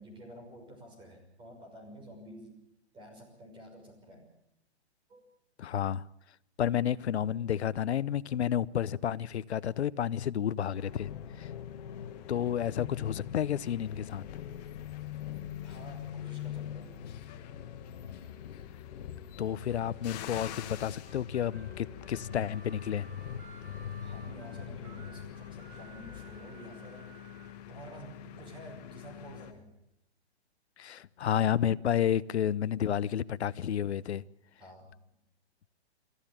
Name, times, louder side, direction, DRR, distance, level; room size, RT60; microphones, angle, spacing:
voice 1, 0.0-2.6 2.9-4.3 5.1-5.2 15.6-16.9 24.0-27.1 27.7-29.7 34.6-34.9, equal, 15° right, 6.0 m, -50 dB
voice 2, 5.6-6.0 6.6-11.1 11.4-11.5 12.3-14.3 19.4-23.1 30.8-34.2, left 9 dB, 75° left, 0.9 m, -31 dB
sound 1, 10.8-29.5, left 10 dB, 35° left, 1.6 m, -49 dB
sound 2, 10.9-26.4, left 10 dB, 55° left, 1.6 m, -43 dB
Harmonica, 21.0-27.6, right 5 dB, 55° right, 4.0 m, -55 dB
23.0 x 14.5 x 8.8 m
hypercardioid pair, 145°, 33 cm